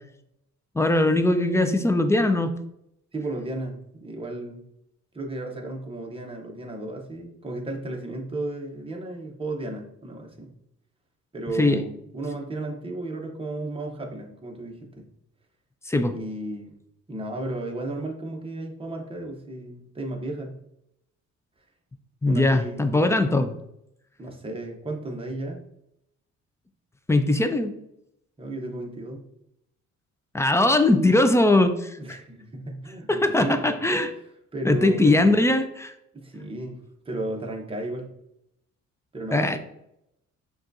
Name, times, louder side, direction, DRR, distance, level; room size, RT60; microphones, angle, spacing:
voice 1, 0.8-2.5 11.6-11.8 15.9-16.1 22.2-23.5 27.1-27.7 30.3-32.2 33.1-34.1 34.6-35.9 39.3-39.6, left 2 dB, 10° left, 8 dB, 0.3 m, -20 dB
voice 2, 3.1-4.6 5.1-10.5 11.3-15.0 16.1-16.8 17.1-20.6 22.3-23.1 24.2-25.6 28.4-29.2 32.0-33.8 34.5-35.2 36.1-36.8 37.0-38.1 39.1-39.6, right 2 dB, 20° right, 1 dB, 0.9 m, -34 dB
6.0 x 2.4 x 2.6 m, 0.80 s
cardioid pair, 90°, 30 cm